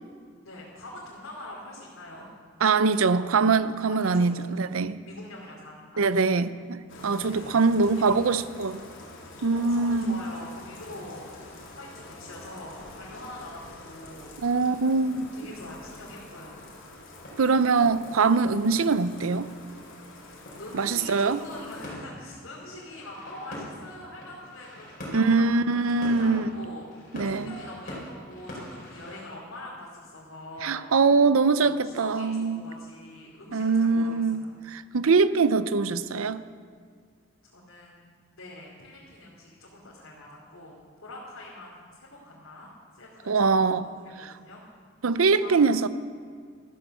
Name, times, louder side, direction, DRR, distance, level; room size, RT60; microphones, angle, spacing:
voice 1, 0.4-2.3 2.6-3.4 3.9-4.4 5.1-6.1 7.2-8.3 9.5-11.3 11.7-14.3 15.3-16.6 20.2-27.1 27.4-30.9 31.5-34.5 37.4-38.0 38.3-43.9 44.4-44.6 45.3-45.8, left 1 dB, 85° left, 2.9 m, -44 dB
voice 2, 2.6-5.0 6.0-8.8 9.4-10.2 14.4-15.3 17.4-19.5 20.7-21.4 25.1-26.5 27.1-27.5 30.6-32.6 33.5-36.4 43.3-43.9 44.2-44.3 45.0-45.9, right 4 dB, 85° right, 0.6 m, -23 dB
Bathtub (filling or washing), 6.9-21.9, left 2 dB, 70° left, 3.1 m, -47 dB
sound 1, 13.0-29.3, equal, 40° left, 4.8 m, -45 dB
14.0 x 12.5 x 6.7 m
head